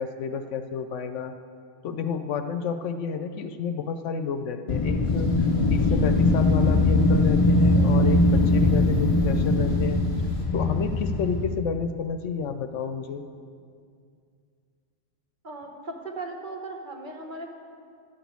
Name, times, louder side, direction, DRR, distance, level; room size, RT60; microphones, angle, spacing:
voice 1, 0.0-1.3 1.8-5.3 5.7-10.0 10.5-13.2, left 6 dB, 75° left, 8 dB, 0.9 m, -30 dB
Wind, 4.7-11.6, left 2 dB, 45° left, 0.4 m, -21 dB
sound 1, 5.0-10.5, right 1 dB, 80° right, 2.0 m, -36 dB
voice 2, 15.4-17.5, right 2 dB, 40° right, 2 dB, 1.3 m, -37 dB
11.5 x 6.1 x 8.3 m, 2.3 s
omnidirectional pair, 1.3 m